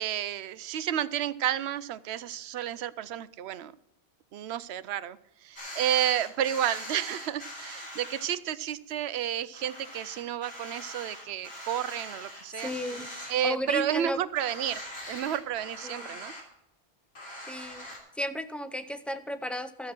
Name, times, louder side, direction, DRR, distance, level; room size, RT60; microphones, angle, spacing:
voice 1, 0.0-3.7 4.3-12.7 13.3-14.8 15.1-16.3, right 11 dB, 75° right, 16 dB, 0.8 m, -31 dB
sound 1, 5.6-8.2 8.7-8.8 9.2-9.3 9.5-13.7 14.0-14.1 14.3-16.4 17.2-18.0, left 1 dB, 65° left, 3.3 m, -42 dB
voice 2, 12.5-14.2 15.8-16.1 17.5-17.9 18.2-19.9, left 1 dB, ahead, 10 dB, 0.3 m, -34 dB
13.0 x 7.2 x 5.9 m, 0.83 s
omnidirectional pair, 1.1 m